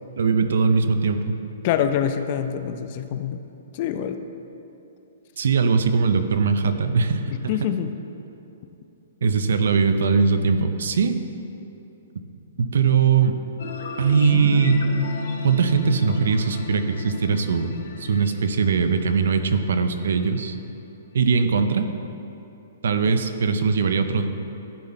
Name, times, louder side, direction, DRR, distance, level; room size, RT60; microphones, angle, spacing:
voice 1, 0.2-1.2 5.4-7.5 9.2-11.2 12.6-13.4 14.0-14.8 15.4-20.5 21.1-21.9 22.8-24.3, right 5 dB, 70° right, 9 dB, 0.5 m, -21 dB
voice 2, 1.6-3.4 3.7-4.2 7.3-7.9 23.1-23.2, left 9 dB, 30° left, 9 dB, 0.3 m, -25 dB
sound 1, 13.6-20.6, left 2 dB, 60° left, 0.8 m, -34 dB
11.5 x 4.3 x 3.9 m, 2.8 s
hypercardioid pair, 175°, 0 cm